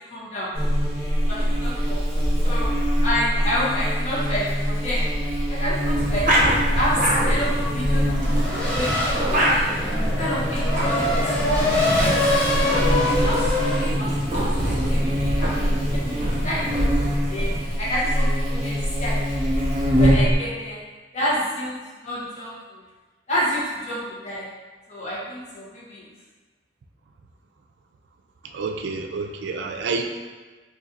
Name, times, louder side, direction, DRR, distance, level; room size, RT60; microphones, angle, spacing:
voice 1, 0.1-0.5 1.3-2.0 2.4-2.7 3.0-5.0 5.5-6.3 6.7-9.6 10.2-11.0 11.4-11.8 12.6-15.5 15.9-16.2 16.4-17.5 17.8-19.5 19.9-20.8 21.1-21.8 22.0-22.5 23.3-24.5 24.9-26.0, equal, 40° left, -8 dB, 1.1 m, -29 dB
Buzz, 0.5-20.3, equal, 35° right, 1.3 m, -24 dB
sound 1, 5.9-17.7, right 1 dB, 50° right, 0.7 m, -27 dB
Race car auto racing / Accelerating revving vroom, 8.2-13.9, left 1 dB, 5° left, 0.7 m, -24 dB
voice 2, 28.5-30.0, right 4 dB, 80° right, 4 dB, 0.3 m, -28 dB
4.0 x 2.7 x 2.6 m, 1.3 s
head